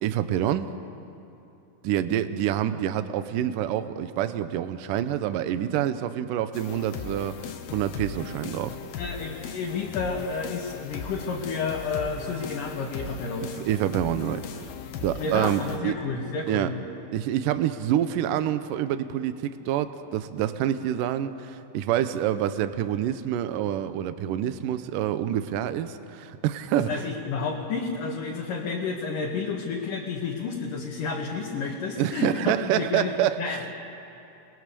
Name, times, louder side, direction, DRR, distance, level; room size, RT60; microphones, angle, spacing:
voice 1, 0.0-0.7 1.8-8.8 13.6-14.7 15.0-15.9 16.5-16.7 17.1-27.0 32.0-33.6, right 11 dB, 75° right, 11 dB, 2.2 m, -27 dB
sound 1, 6.5-15.8, left 6 dB, 85° left, 3.2 m, -38 dB
voice 2, 8.9-13.5 15.2-16.7 26.7-33.1 33.4-33.6, left 4 dB, 60° left, -2 dB, 3.1 m, -31 dB
30.0 x 20.5 x 6.9 m, 2.9 s
omnidirectional pair, 4.5 m